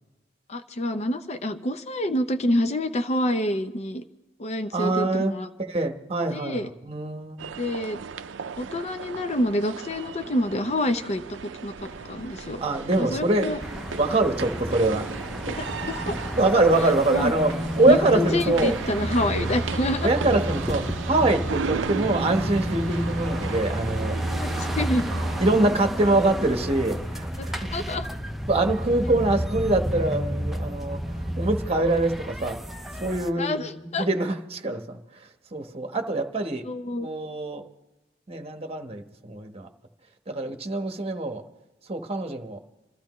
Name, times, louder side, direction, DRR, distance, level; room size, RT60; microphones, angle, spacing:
voice 1, 0.5-4.0 4.4-5.5 6.3-6.7 7.6-8.0 8.6-12.6 13.0-13.6 15.5-16.1 17.1-17.3 17.9-20.1 24.3-25.1 27.4-28.1 33.4-34.1 36.6-37.1, left 1 dB, 35° left, 8 dB, 0.7 m, -27 dB
voice 2, 4.7-5.3 5.7-7.4 12.6-13.5 13.9-15.1 16.0-18.8 20.0-24.2 25.4-27.7 28.5-31.0 31.4-32.6 33.0-35.0 35.5-36.6 37.0-37.6 38.3-39.7 40.3-41.4 41.9-42.6, right 2 dB, 35° right, 5 dB, 1.2 m, -24 dB
sound 1, 7.4-25.4, right 5 dB, 75° right, 0.5 m, -36 dB
sound 2, 11.8-28.1, equal, 60° left, 4.8 m, -48 dB
Busy Street, 13.6-33.3, equal, ahead, 0.7 m, -31 dB
28.0 x 13.0 x 3.1 m, 1.1 s
head